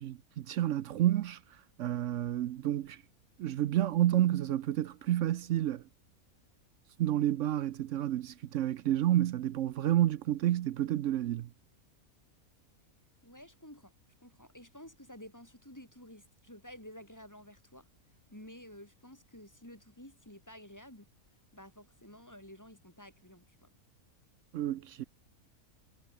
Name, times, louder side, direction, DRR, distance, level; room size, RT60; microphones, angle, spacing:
voice 1, 0.0-1.4 1.8-3.0 3.4-5.8 7.0-11.5 24.5-25.0, right 12 dB, 65° right, 0.9 m, -30 dB
voice 2, 13.2-13.9 14.2-17.9 18.3-21.1 21.5-23.7, equal, 10° left, 4.4 m, -52 dB
omnidirectional pair, 1.5 m